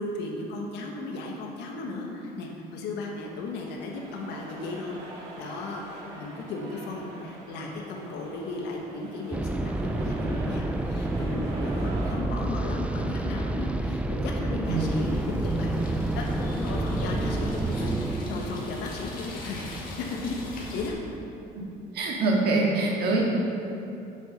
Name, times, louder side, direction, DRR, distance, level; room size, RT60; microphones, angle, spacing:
voice 1, 0.0-15.9 16.1-19.6 20.0-21.0, left 3 dB, 85° left, 0 dB, 1.5 m, -35 dB
sound 1, 3.2-12.1, right 2 dB, 85° right, 2.1 m, -44 dB
sound 2, 9.3-20.1, right 2 dB, 5° right, 0.4 m, -29 dB
sound 3, 14.6-20.9, left 1 dB, 55° left, 1.8 m, -39 dB
voice 2, 21.9-23.3, right 2 dB, 70° right, -2 dB, 2.0 m, -24 dB
7.7 x 7.6 x 5.4 m, 2.7 s
cardioid pair, 110°, 17 cm